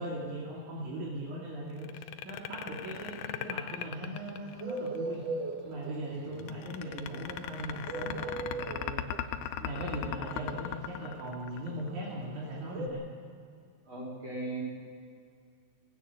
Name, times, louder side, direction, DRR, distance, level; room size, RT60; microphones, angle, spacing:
voice 1, 0.0-5.2 5.6-9.1 9.6-13.0, right 1 dB, 80° right, -5 dB, 4.0 m, -39 dB
sound 1, 1.8-5.0 6.4-11.9, left 10 dB, 90° left, 2.3 m, -38 dB
Bird, 3.0-12.9, right 3 dB, 60° right, 2.7 m, -38 dB
voice 2, 6.1-6.6 13.8-14.6, right 2 dB, 40° right, -1 dB, 5.9 m, -39 dB
20.5 x 16.5 x 8.3 m, 2.3 s
omnidirectional pair, 3.4 m